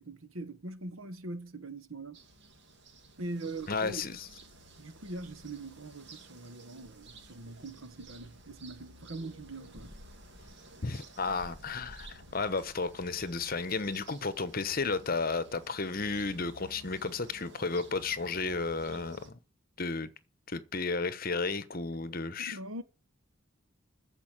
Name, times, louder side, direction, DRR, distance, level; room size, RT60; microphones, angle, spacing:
voice 1, 0.0-2.2 3.2-4.2 4.8-9.9 22.5-22.8, right 2 dB, 85° right, 1.4 m, -42 dB
sound 1, 2.1-19.3, right 1 dB, 55° right, 2.6 m, -53 dB
voice 2, 3.7-4.3 10.8-19.4 19.8-20.1 20.5-22.6, left 4 dB, 45° left, 1.0 m, -33 dB
14.0 x 5.3 x 9.0 m
head